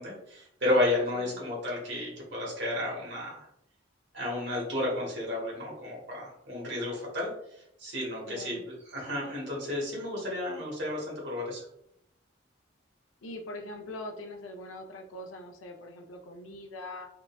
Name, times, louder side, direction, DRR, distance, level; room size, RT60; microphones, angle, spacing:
voice 1, 0.0-3.4 4.1-7.3 7.8-11.6, left 1 dB, 60° right, -3 dB, 1.2 m, -32 dB
voice 2, 8.3-8.6 13.2-17.1, left 1 dB, 85° left, 3 dB, 0.5 m, -42 dB
3.7 x 2.2 x 2.2 m, 0.77 s
head